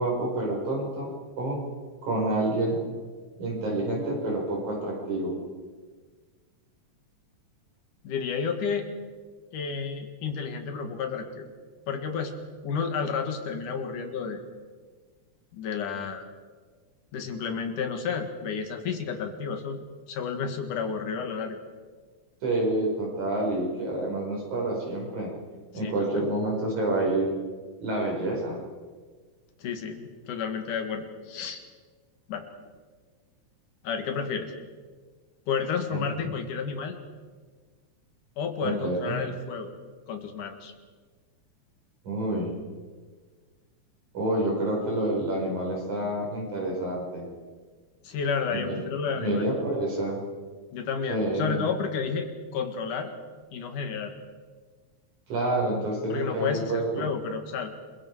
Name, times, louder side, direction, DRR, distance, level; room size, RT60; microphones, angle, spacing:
voice 1, 0.0-1.6 2.0-2.8 3.4-5.4 22.4-25.3 25.7-27.3 27.8-28.6 35.9-36.3 38.6-39.2 42.0-42.5 44.1-47.3 48.5-48.8 49.2-50.2 51.1-51.7 55.3-57.1, right 1 dB, 70° right, -2 dB, 6.7 m, -28 dB
voice 2, 8.0-8.9 9.5-11.5 11.9-12.3 12.6-14.4 15.5-16.2 17.1-19.8 20.1-21.6 25.8-26.2 29.6-31.6 32.3-32.5 33.8-34.5 35.5-37.0 38.4-39.7 40.1-40.7 48.0-49.5 50.7-53.1 53.5-54.1 56.1-57.7, left 6 dB, 85° left, 5 dB, 3.5 m, -31 dB
29.5 x 22.5 x 4.8 m, 1.5 s
omnidirectional pair, 3.5 m